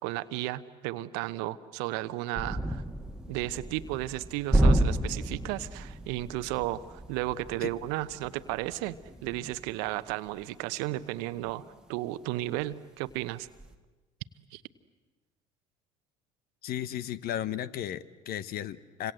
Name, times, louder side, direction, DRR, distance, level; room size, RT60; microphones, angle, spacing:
voice 1, 0.0-2.8 3.3-11.6 11.9-13.5 14.5-14.6, right 16 dB, 70° right, 14 dB, 1.0 m, -34 dB
sound 1, 2.3-12.1 12.4-12.6 13.0-13.7, right 1 dB, 5° right, 1.9 m, -31 dB
voice 2, 16.6-19.1, left 11 dB, 55° left, 16 dB, 1.1 m, -35 dB
29.0 x 26.0 x 7.8 m, 1.2 s
hypercardioid pair, 60°, 18 cm